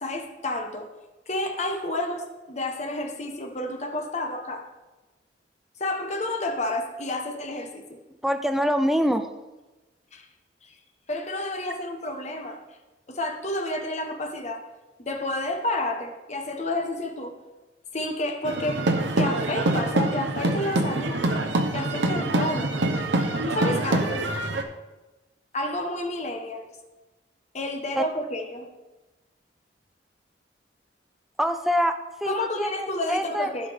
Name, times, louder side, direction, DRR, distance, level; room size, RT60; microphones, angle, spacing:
voice 1, 0.0-0.9 1.3-4.6 5.8-7.9 10.1-10.3 10.6-10.7 11.1-12.6 13.1-14.6 15.0-17.3 17.9-18.8 19.2-21.2 21.7-22.7 23.4-24.2 25.5-26.6 27.5-28.7 32.2-33.7, left 1 dB, 40° left, 4 dB, 1.1 m, -30 dB
voice 2, 8.2-9.3 27.9-28.0 31.4-31.9 32.2-33.5, equal, ahead, 7 dB, 0.5 m, -24 dB
sound 1, 18.4-24.6, right 2 dB, 90° right, 0.9 m, -25 dB
15.5 x 5.2 x 3.5 m, 1.1 s
head